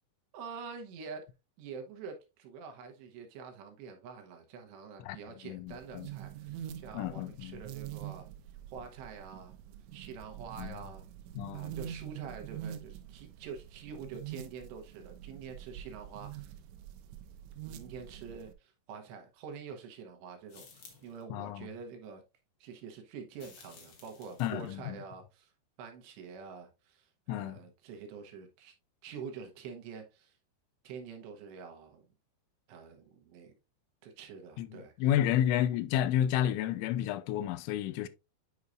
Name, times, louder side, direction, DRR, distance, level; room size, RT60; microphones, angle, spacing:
voice 1, 0.3-1.3 1.6-8.3 8.7-9.5 9.9-11.1 11.5-16.5 17.7-22.2 22.6-25.5 25.8-28.7 29.0-30.4 30.8-32.0 32.7-33.6 34.0-34.9 35.3-35.4, right 6 dB, 75° right, 3.0 m, -46 dB
voice 2, 5.4-6.1 6.9-7.6 10.6-10.8 11.4-11.7 21.3-21.7 24.4-25.0 27.3-27.6 34.6-38.1, left 11 dB, 85° left, 2.9 m, -31 dB
sound 1, 5.7-18.5, right 11 dB, 90° right, 3.0 m, -45 dB
sound 2, 20.5-21.2 23.4-24.7, left 5 dB, 60° left, 1.6 m, -55 dB
9.5 x 4.7 x 2.4 m
omnidirectional pair, 5.3 m